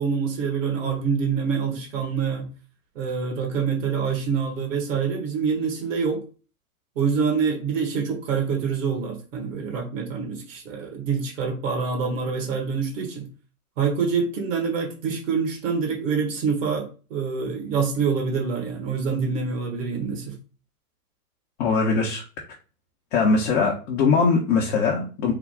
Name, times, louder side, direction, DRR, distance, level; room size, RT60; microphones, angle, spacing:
voice 1, 0.0-2.4 2.9-6.2 6.9-13.3 13.8-20.3, right 5 dB, 55° right, 2 dB, 1.5 m, -26 dB
voice 2, 21.6-22.2 23.1-25.3, left 4 dB, 45° left, -2 dB, 0.9 m, -21 dB
3.7 x 2.3 x 3.5 m, 0.35 s
hypercardioid pair, 115°, 46 cm